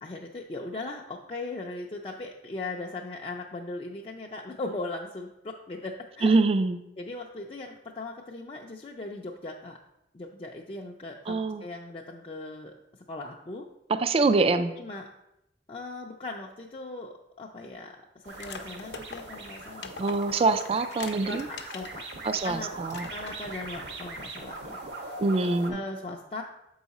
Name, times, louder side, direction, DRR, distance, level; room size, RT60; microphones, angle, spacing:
voice 1, 0.0-6.4 7.0-9.8 10.1-12.7 13.1-13.7 14.8-15.1 15.7-19.9 21.3-21.4 21.7-22.0 22.4-22.7 23.1-25.1 25.7-26.4, left 2 dB, 30° left, 0 dB, 0.4 m, -38 dB
voice 2, 6.2-6.8 11.3-11.6 13.9-14.7 20.0-21.5 22.2-23.1 25.2-25.8, right 3 dB, 35° right, 10 dB, 0.3 m, -24 dB
sound 1, 18.2-25.7, right 2 dB, 80° right, 1.1 m, -41 dB
sound 2, 18.3-22.0 22.4-22.5 22.9-23.6, left 5 dB, 90° left, 0.7 m, -42 dB
7.2 x 4.7 x 4.0 m, 0.86 s
head